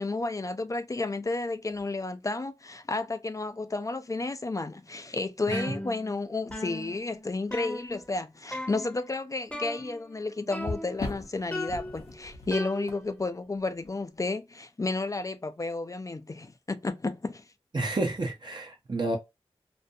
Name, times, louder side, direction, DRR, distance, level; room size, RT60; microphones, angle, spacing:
voice 1, 0.0-17.4, left 3 dB, 30° left, 0.3 m, -32 dB
sound 1, 1.7-1.9 3.4-3.6 4.2-4.3 6.5-7.3 7.9-8.1 10.5-14.2 18.0-18.3, left 2 dB, 70° left, 0.7 m, -41 dB
sound 2, 5.5-6.2 6.5-8.2 8.5-9.1 9.5-10.2 10.5-11.1 11.5-13.2, left 1 dB, 10° left, 0.7 m, -37 dB
voice 2, 17.7-19.2, right 2 dB, 45° right, 0.6 m, -30 dB
2.5 x 2.1 x 2.6 m
wide cardioid pair, 55°, 10 cm